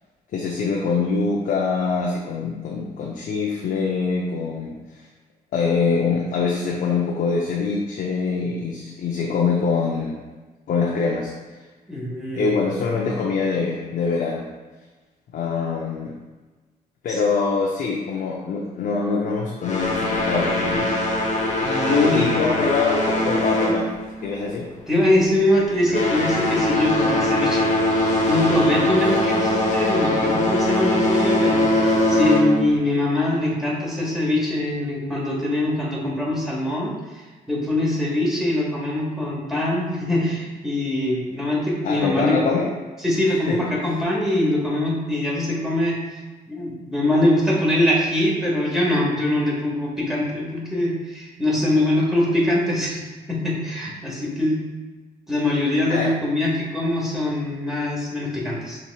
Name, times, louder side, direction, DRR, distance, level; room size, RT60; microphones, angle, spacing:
voice 1, 0.3-4.8 5.5-10.2 10.7-11.3 12.3-14.5 15.3-16.2 17.0-21.0 21.9-23.9 24.2-24.7 41.8-42.7 43.2-43.6 55.9-56.1, left 4 dB, 65° left, -2 dB, 0.6 m, -24 dB
voice 2, 11.9-12.6 17.1-17.2 21.6-22.2 24.9-42.4 43.0-46.0 46.5-54.6 55.3-58.8, left 1 dB, ahead, -5 dB, 1.4 m, -23 dB
sound 1, 19.6-24.5 24.8-25.1 25.7-32.8, left 1 dB, 50° left, 1.0 m, -21 dB
5.7 x 3.0 x 2.3 m, 1.3 s
cardioid pair, 70°, 16 cm